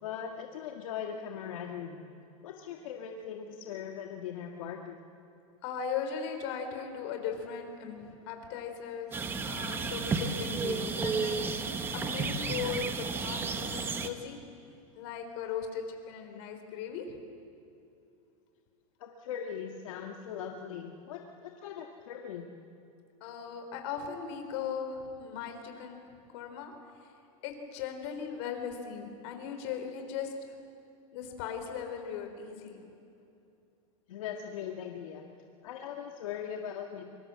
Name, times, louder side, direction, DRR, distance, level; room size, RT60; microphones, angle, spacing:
voice 1, 0.0-2.0 2.4-5.0 19.0-22.5 34.1-35.3 35.6-37.0, left 8 dB, 65° left, 2 dB, 1.9 m, -40 dB
voice 2, 5.6-14.4 14.9-17.2 23.2-26.0 26.3-26.7 27.4-30.3 31.1-32.9, left 7 dB, 45° left, 6 dB, 3.8 m, -38 dB
sound 1, 9.1-14.1, right 4 dB, 10° right, 1.0 m, -32 dB
25.0 x 24.5 x 7.7 m, 2.7 s
supercardioid pair, 170°, 18 cm